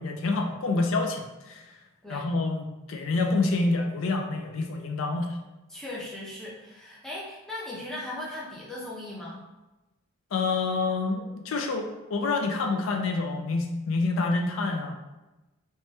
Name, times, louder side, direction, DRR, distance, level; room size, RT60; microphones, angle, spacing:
voice 1, 0.0-1.8 2.1-5.3 10.3-14.9, left 3 dB, 70° left, 3 dB, 0.4 m, -27 dB
voice 2, 5.7-9.4, left 1 dB, ahead, -6 dB, 0.5 m, -38 dB
2.9 x 2.2 x 3.1 m, 1.0 s
head